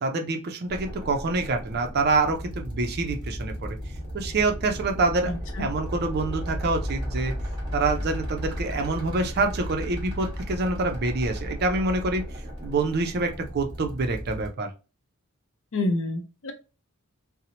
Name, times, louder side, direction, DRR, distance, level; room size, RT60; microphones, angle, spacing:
voice 1, 0.0-3.8 4.1-5.3 5.6-7.3 7.7-12.2 12.6-14.7, right 3 dB, 45° right, 0.4 m, -26 dB
sound 1, 0.7-14.5, equal, 25° right, 1.2 m, -34 dB
voice 2, 5.3-5.6 15.7-16.5, left 2 dB, 60° left, 0.5 m, -28 dB
2.7 x 2.0 x 2.7 m
head